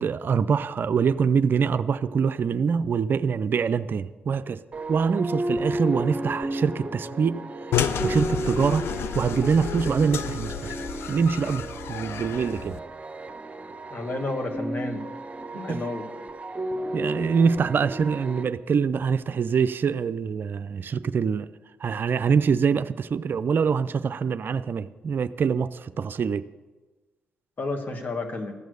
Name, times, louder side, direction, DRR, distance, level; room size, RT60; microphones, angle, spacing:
voice 1, 0.0-4.6 4.9-7.4 8.0-8.9 9.1-10.7 11.1-11.6 11.9-12.8 15.5-15.8 16.9-21.5 21.8-26.4, right 6 dB, 50° right, 13 dB, 0.4 m, -24 dB
sound 1, 4.7-18.4, right 1 dB, 30° right, 0.9 m, -33 dB
sound 2, 7.7-12.8, left 9 dB, 70° left, 0.5 m, -31 dB
voice 2, 13.9-15.1 15.5-16.1 27.6-28.5, left 2 dB, 45° left, 4 dB, 1.9 m, -31 dB
14.5 x 6.3 x 6.7 m, 1.3 s
hypercardioid pair, 45°, 4 cm